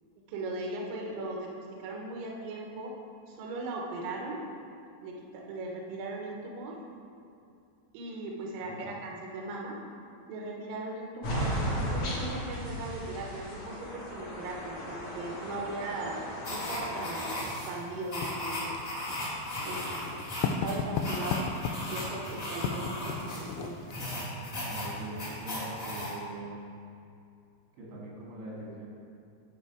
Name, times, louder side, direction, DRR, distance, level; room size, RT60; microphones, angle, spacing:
voice 1, 0.3-2.9 3.3-4.5 5.0-6.8 7.9-9.8 10.3-16.2 16.5-17.4 17.7-18.8 19.6-20.3 20.6-21.4 21.9-23.8, right 2 dB, 70° right, -1 dB, 2.3 m, -38 dB
sound 1, 11.2-17.4, equal, 60° left, 1.4 m, -35 dB
sound 2, 16.4-26.1, left 1 dB, 30° left, 1.5 m, -37 dB
Writing, 18.2-24.2, left 5 dB, 85° left, 2.6 m, -35 dB
voice 2, 19.6-19.9 21.2-21.3 24.6-26.7 27.8-28.9, right 2 dB, 90° right, -5 dB, 4.5 m, -43 dB
9.5 x 5.1 x 4.9 m, 2.5 s
omnidirectional pair, 5.0 m